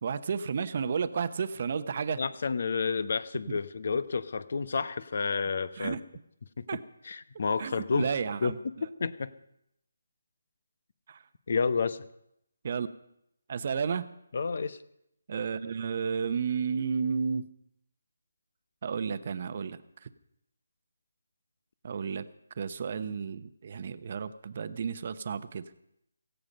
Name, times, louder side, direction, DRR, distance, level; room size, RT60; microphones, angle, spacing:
voice 1, 0.0-2.2 3.5-3.6 5.8-6.0 6.7-6.8 7.6-8.6 11.1-11.2 12.6-12.9 13.5-14.1 15.3-17.5 18.8-20.1 21.8-22.2 22.6-25.6, right 6 dB, 40° right, 12 dB, 0.9 m, -32 dB
voice 2, 2.2-6.0 6.6-6.7 7.0-8.1 8.4-8.7 9.0-9.3 11.5-12.0 14.3-14.8, left 5 dB, 55° left, 15 dB, 1.0 m, -30 dB
17.5 x 15.5 x 5.3 m, 0.78 s
hypercardioid pair, 165°, 0 cm